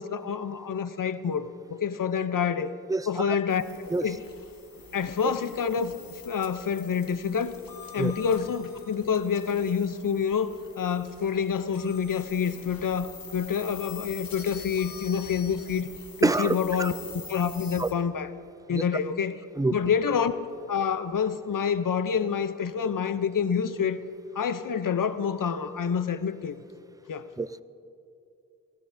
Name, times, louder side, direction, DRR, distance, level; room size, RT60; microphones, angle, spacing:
voice 1, 0.0-2.7 3.1-3.6 4.0-4.2 4.9-5.9 6.2-7.6 7.9-15.9 16.2-16.9 17.3-18.3 18.7-19.4 19.7-20.4 20.7-24.0 24.4-26.6 27.1-27.3, left 7 dB, 70° left, 12 dB, 0.6 m, -27 dB
voice 2, 2.9-3.4 3.9-4.0 5.2-5.3 8.0-8.1 16.2-16.9 17.8-17.9 18.7-18.8 19.6-19.8 27.4-27.6, right 3 dB, 10° right, 15 dB, 0.3 m, -26 dB
sound 1, 3.5-17.9, left 5 dB, 85° left, 1.2 m, -45 dB
18.5 x 16.0 x 2.6 m, 2.5 s
cardioid pair, 50°, 34 cm